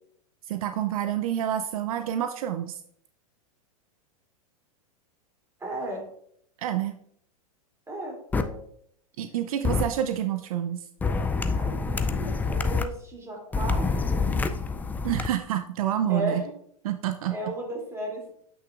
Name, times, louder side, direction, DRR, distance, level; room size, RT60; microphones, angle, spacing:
voice 1, 0.5-2.8 6.6-6.9 9.2-10.9 15.0-16.4 16.8-17.4, right 11 dB, 70° right, 8 dB, 0.5 m, -28 dB
voice 2, 5.6-6.0 7.9-8.6 11.5-14.6 16.1-16.5 17.3-18.3, right 1 dB, 15° right, -1 dB, 2.9 m, -35 dB
sound 1, 8.3-8.4 9.6-9.8 11.0-12.8 13.5-15.3, left 4 dB, 10° left, 0.3 m, -26 dB
8.2 x 5.8 x 2.5 m, 0.66 s
hypercardioid pair, 110°, 19 cm